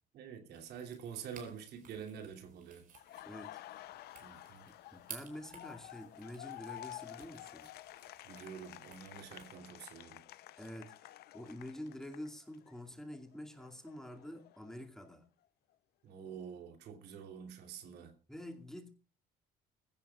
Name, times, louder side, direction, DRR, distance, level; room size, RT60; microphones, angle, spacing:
voice 1, 0.1-2.9 4.2-4.7 8.2-10.2 16.0-18.1, right 7 dB, 75° right, 3.1 m, -47 dB
sound 1, 0.5-9.5, right 7 dB, 55° right, 4.8 m, -57 dB
Laughter, 2.9-12.8 13.1-15.1, left 14 dB, 70° left, 0.7 m, -52 dB
voice 2, 3.3-3.6 4.7-7.7 10.6-15.3 18.3-18.9, left 1 dB, 5° left, 2.4 m, -48 dB
21.0 x 15.5 x 2.4 m
cardioid pair, 110°, 17 cm